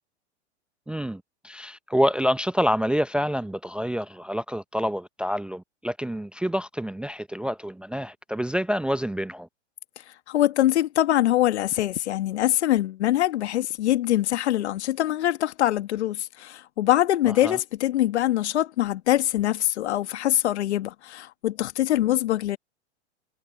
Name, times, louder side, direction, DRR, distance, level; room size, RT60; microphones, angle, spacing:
voice 1, 0.9-9.5 17.4-17.6, equal, 5° right, 0.6 m, -27 dB
voice 2, 10.3-22.6, left 13 dB, 70° left, 1.8 m, -23 dB
hypercardioid pair, 110°, 35 cm